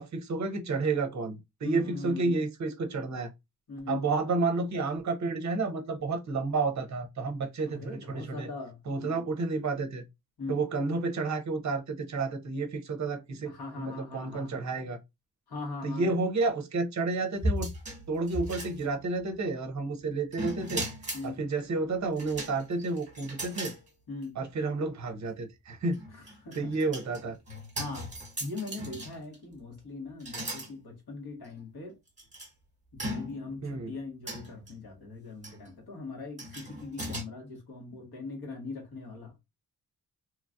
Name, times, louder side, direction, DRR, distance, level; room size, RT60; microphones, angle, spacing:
voice 1, 0.0-3.3 3.9-8.5 8.9-10.0 10.5-13.5 13.8-15.0 15.8-17.7 18.1-20.8 21.2-23.7 24.4-26.0 26.6-27.4 33.6-33.9, right 3 dB, 45° right, 0.6 m, -31 dB
voice 2, 1.6-2.4 3.7-4.1 7.6-9.2 10.4-10.6 13.4-14.5 15.5-16.2 21.1-21.4 24.1-24.4 26.1-26.7 27.8-28.1 28.4-32.0 32.9-39.4, left 3 dB, 70° left, 1.4 m, -40 dB
sound 1, 17.4-19.2 20.3-21.3 22.2-23.8 24.2-24.3 25.9-29.4 30.2-30.7 31.4-31.5 32.2-32.5 33.0-33.6 34.3-34.7 35.4-35.7 36.4-37.2, equal, 20° right, 1.1 m, -37 dB
3.0 x 2.3 x 2.5 m
wide cardioid pair, 160°, 39 cm